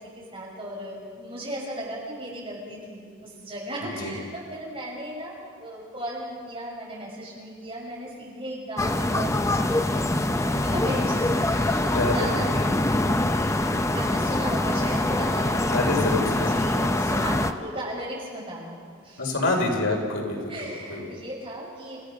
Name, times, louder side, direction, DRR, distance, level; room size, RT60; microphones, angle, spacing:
voice 1, 0.2-9.7 10.2-15.9 16.5-18.8 19.0-19.3 20.5-22.0, right 1 dB, 25° right, -4 dB, 6.6 m, -36 dB
voice 2, 3.8-4.1 11.9-12.7 15.7-16.7 19.2-21.1, left 2 dB, 85° left, 0 dB, 4.3 m, -27 dB
sound 1, 8.8-17.5, left 1 dB, 15° left, 0.6 m, -24 dB
29.5 x 15.5 x 6.6 m, 2.1 s
head